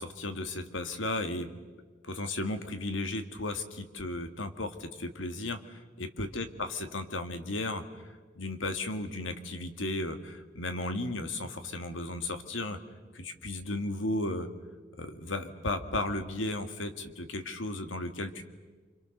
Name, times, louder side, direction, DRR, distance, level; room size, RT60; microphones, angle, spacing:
voice 1, 0.0-1.5 2.0-7.8 8.4-12.8 13.1-14.5 15.0-18.4, left 2 dB, 75° left, 8 dB, 1.9 m, -35 dB
29.5 x 26.0 x 6.6 m, 1.4 s
head